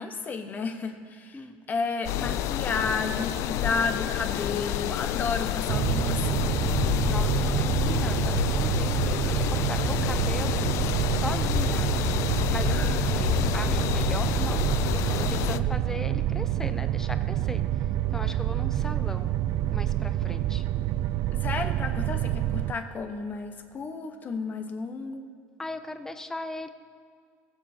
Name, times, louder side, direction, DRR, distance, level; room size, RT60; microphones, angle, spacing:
voice 1, 0.0-6.5 12.7-13.0 15.5-15.6 21.4-25.3, left 4 dB, 30° left, 6 dB, 1.1 m, -32 dB
sound 1, 2.0-15.6, left 12 dB, 55° left, 0.4 m, -28 dB
sound 2, 5.7-22.7, right 13 dB, 55° right, 0.3 m, -27 dB
voice 2, 6.8-12.0 12.5-17.6 18.1-19.3 19.7-20.6 25.6-26.7, left 2 dB, 10° left, 10 dB, 0.6 m, -38 dB
20.5 x 7.4 x 2.8 m, 2.2 s
supercardioid pair, 115°, 6 cm